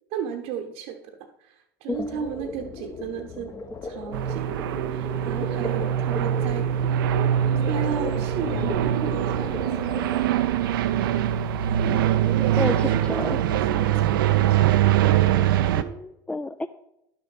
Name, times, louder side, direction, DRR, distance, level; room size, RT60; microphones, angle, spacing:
voice 1, 0.1-3.5 3.8-6.7 7.6-11.1 11.8-15.9, right 8 dB, 65° right, 3 dB, 1.0 m, -35 dB
sound 1, 1.9-10.2, left 4 dB, 30° left, 1.3 m, -36 dB
sound 2, 4.1-15.8, right 11 dB, 80° right, 0.6 m, -23 dB
voice 2, 12.6-13.4 15.8-16.7, left 2 dB, 10° left, 9 dB, 0.4 m, -30 dB
11.0 x 6.8 x 4.1 m, 0.83 s
hypercardioid pair, 85°, 11 cm